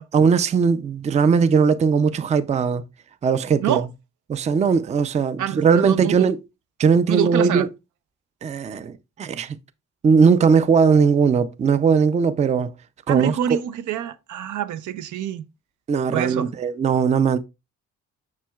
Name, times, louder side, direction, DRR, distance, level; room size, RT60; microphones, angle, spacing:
voice 1, 0.1-2.8 3.2-3.9 4.3-6.4 6.8-7.7 8.4-9.6 10.0-12.7 13.1-13.6 15.9-17.4, right 6 dB, 25° right, 0.4 m, -19 dB
voice 2, 5.4-6.3 7.1-7.7 13.1-15.4 16.1-16.5, right 9 dB, 85° right, 0.6 m, -26 dB
7.4 x 6.2 x 2.3 m
cardioid pair, 140°, 29 cm